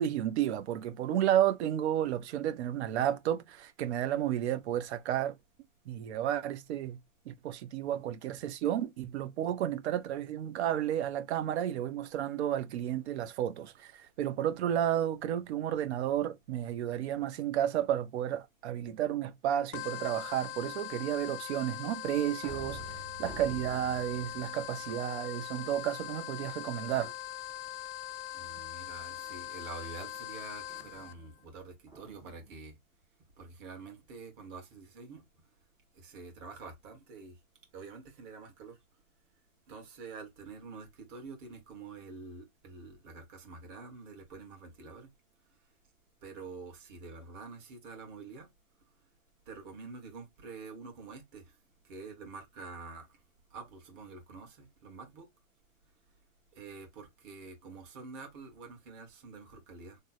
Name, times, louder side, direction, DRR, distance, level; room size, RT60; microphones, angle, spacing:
voice 1, 0.0-5.3 5.9-7.0 7.3-27.1, right 11 dB, 55° right, 0.6 m, -32 dB
sound 1, 19.7-31.1, left 13 dB, 50° left, 0.5 m, -42 dB
sound 2, 22.0-25.7 26.3-26.9 27.3-27.7 29.2-32.5, right 2 dB, 10° right, 0.5 m, -50 dB
voice 2, 28.3-32.8 33.4-35.2 35.9-37.4 37.7-38.8 39.7-45.1 46.2-48.5 49.5-51.5 51.8-53.2 53.5-55.3 56.5-60.0, right 4 dB, 40° right, 1.4 m, -47 dB
3.3 x 2.1 x 4.1 m
supercardioid pair, 160°, 39 cm